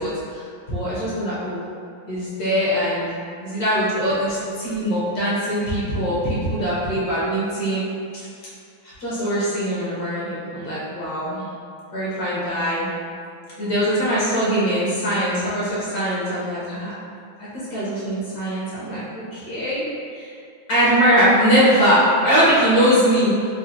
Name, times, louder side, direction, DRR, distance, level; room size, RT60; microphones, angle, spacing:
voice 1, 0.0-1.6 2.1-3.1 3.4-7.8 8.1-8.3 8.8-11.5 11.9-12.9 13.6-16.9 17.4-19.0 19.3-19.8 20.1-20.3 20.7-23.3, equal, 65° left, -10 dB, 1.4 m, -21 dB
4.4 x 2.2 x 2.5 m, 2.4 s
omnidirectional pair, 2.2 m